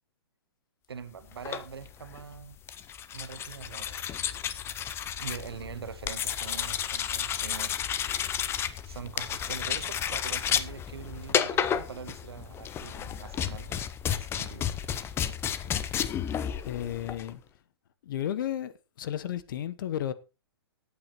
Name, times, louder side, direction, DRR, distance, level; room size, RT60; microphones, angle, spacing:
voice 1, 0.9-2.6 3.1-4.1 5.2-8.0 8.8-14.7, right 6 dB, 70° right, 1.5 m, -43 dB
sound 1, 1.3-17.3, left 9 dB, 20° left, 0.7 m, -32 dB
voice 2, 16.6-17.4 18.0-20.1, left 11 dB, 50° left, 1.1 m, -33 dB
17.5 x 8.6 x 3.1 m
figure-of-eight pair, 120°, 14 cm